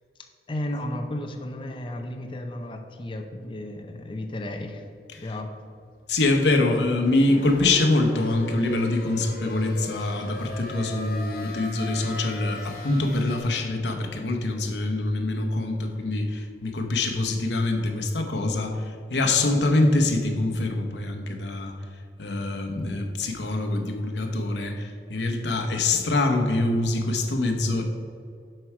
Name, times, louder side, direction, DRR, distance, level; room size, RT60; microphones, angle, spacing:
voice 1, 0.5-4.8 5.2-5.5, left 1 dB, 30° left, 4 dB, 0.6 m, -33 dB
voice 2, 6.1-21.7 22.2-27.8, left 2 dB, 85° left, 4 dB, 0.9 m, -24 dB
sound 1, 7.0-13.4, left 2 dB, 55° left, 1.0 m, -38 dB
7.7 x 4.6 x 4.8 m, 2.4 s
head